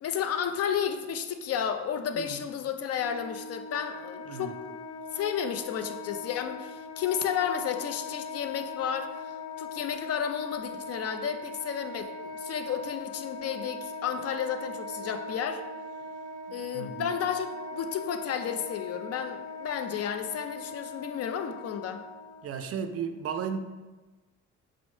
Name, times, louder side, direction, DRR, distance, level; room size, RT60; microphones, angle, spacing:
voice 1, 0.0-4.8 5.1-15.6 16.5-22.0, left 8 dB, 55° left, 7 dB, 0.4 m, -32 dB
Wind instrument woodwind instrument, 2.9-22.4, left 3 dB, 85° left, 0.7 m, -40 dB
voice 2, 16.7-17.1 22.4-23.6, right 7 dB, 50° right, 8 dB, 0.4 m, -34 dB
5.2 x 2.1 x 3.1 m, 1.2 s
cardioid pair, 90°, 30 cm